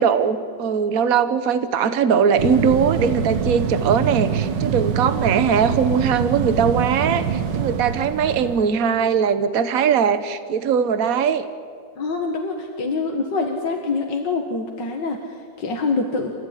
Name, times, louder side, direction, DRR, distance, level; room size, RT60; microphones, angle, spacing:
voice 1, 0.0-11.5, right 7 dB, 55° right, 11 dB, 1.5 m, -20 dB
sound 1, 2.4-8.6, right 7 dB, 85° right, 1.8 m, -24 dB
voice 2, 12.0-16.4, left 3 dB, 85° left, 2 dB, 2.4 m, -25 dB
29.0 x 15.5 x 10.0 m, 2.3 s
omnidirectional pair, 1.9 m